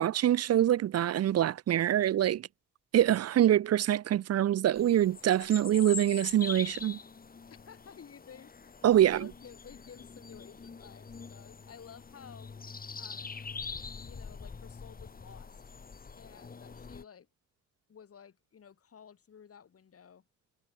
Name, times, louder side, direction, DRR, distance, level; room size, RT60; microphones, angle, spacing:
voice 1, 0.0-2.5 2.9-7.0 8.8-9.3, right 11 dB, 55° right, 0.7 m, -25 dB
sound 1, 4.7-17.0, left 5 dB, 30° left, 2.1 m, -44 dB
voice 2, 7.7-12.5 13.0-13.4 14.0-15.5 16.2-17.3 17.9-20.2, left 7 dB, 50° left, 6.3 m, -53 dB
cardioid pair, 90°, 30 cm